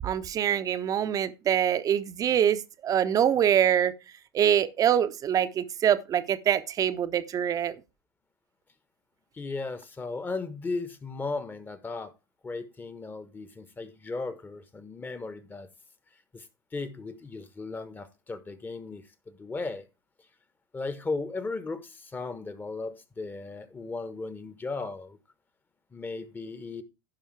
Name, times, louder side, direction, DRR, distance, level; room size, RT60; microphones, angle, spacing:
voice 1, 0.0-3.9 4.3-7.7, right 9 dB, 30° right, 0.9 m, -24 dB
voice 2, 9.3-12.1 12.4-15.7 16.3-16.5 16.7-19.9 20.7-25.2 25.9-26.8, left 3 dB, 15° left, 1.2 m, -36 dB
15.5 x 5.4 x 3.3 m
figure-of-eight pair, 80°, 12 cm